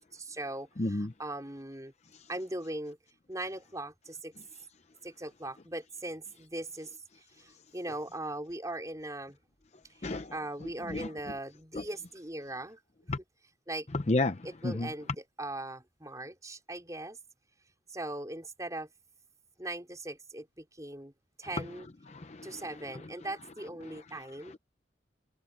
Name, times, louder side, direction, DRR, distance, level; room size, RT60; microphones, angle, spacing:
voice 1, 0.0-1.9 2.3-3.0 3.3-4.3 5.0-6.9 7.4-9.4 10.0-12.8 13.7-13.9 14.4-15.1 15.4-17.2 17.9-18.9 19.6-21.1 21.4-21.9 22.4-24.5, right 1 dB, 20° right, 4.1 m, -39 dB
voice 2, 0.8-1.1 10.0-11.1 11.7-11.8 13.1-13.2 13.9-14.9 22.1-22.8 23.8-24.6, left 2 dB, 35° left, 0.7 m, -33 dB
head